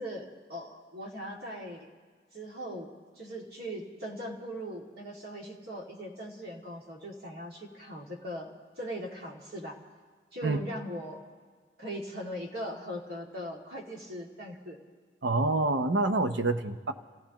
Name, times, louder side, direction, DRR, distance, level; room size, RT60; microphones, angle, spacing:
voice 1, 0.0-1.9 2.3-2.9 3.2-9.8 10.3-11.2 11.8-14.8, equal, 60° right, -1 dB, 2.3 m, -40 dB
voice 2, 15.2-16.9, right 2 dB, 80° right, 7 dB, 0.8 m, -27 dB
29.0 x 15.5 x 3.0 m, 1.5 s
head